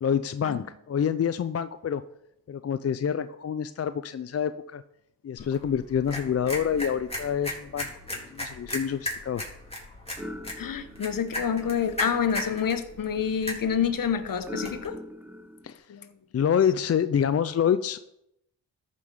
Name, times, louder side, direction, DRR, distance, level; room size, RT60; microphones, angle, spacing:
voice 1, 0.0-2.0 2.5-4.8 5.2-7.9 8.3-9.5 15.6-15.8 16.3-18.0, left 8 dB, 40° left, 12 dB, 0.5 m, -27 dB
sound 1, 5.4-14.9, left 1 dB, 15° left, 3.8 m, -37 dB
sound 2, 6.2-15.8, left 1 dB, 5° right, 1.2 m, -45 dB
voice 2, 10.6-15.0 15.9-16.1, left 7 dB, 60° left, 10 dB, 1.1 m, -28 dB
13.5 x 5.5 x 4.9 m, 0.80 s
cardioid pair, 60°, 38 cm